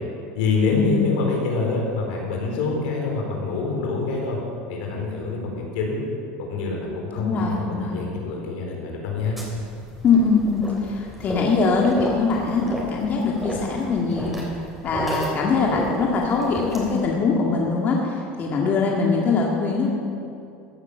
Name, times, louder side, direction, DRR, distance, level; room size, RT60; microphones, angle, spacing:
voice 1, 0.3-4.4 4.7-6.0 6.4-9.4, left 4 dB, 80° left, -1 dB, 4.3 m, -26 dB
voice 2, 7.2-8.0 10.0-14.4 14.8-19.9, left 4 dB, 35° left, -1 dB, 2.0 m, -22 dB
sound 1, 9.4-17.1, equal, ahead, 3.7 m, -33 dB
16.0 x 9.7 x 7.0 m, 2.5 s
supercardioid pair, 125°, 5 cm